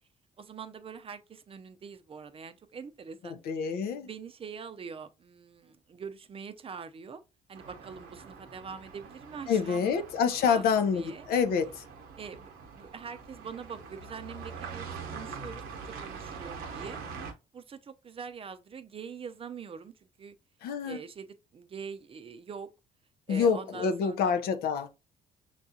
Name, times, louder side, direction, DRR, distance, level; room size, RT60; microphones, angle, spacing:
voice 1, 0.4-7.2 7.5-11.3 12.2-17.0 17.5-20.4 20.8-22.7 23.3-24.4, right 6 dB, 35° right, 0.5 m, -44 dB
voice 2, 3.5-4.1 9.5-11.8 20.6-21.0 23.3-24.9, left 6 dB, 75° left, 0.6 m, -27 dB
sound 1, 7.5-17.3, right 5 dB, 80° right, 0.8 m, -44 dB
5.9 x 2.4 x 2.7 m
supercardioid pair, 70°, 16 cm